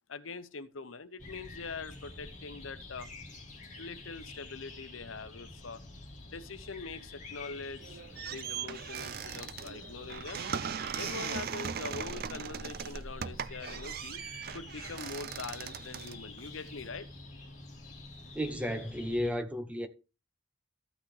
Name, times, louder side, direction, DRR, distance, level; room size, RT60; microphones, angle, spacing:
voice 1, 0.1-3.1 3.8-5.8 6.2-8.0 8.3-10.4 10.9-14.2 14.5-17.1, left 4 dB, 90° left, 0.9 m, -43 dB
sound 1, 1.2-19.3, left 2 dB, 40° left, 2.5 m, -48 dB
sound 2, 7.8-16.9, right 7 dB, 50° right, 0.4 m, -39 dB
voice 2, 18.3-19.9, equal, 5° right, 0.9 m, -33 dB
14.5 x 6.0 x 3.3 m
head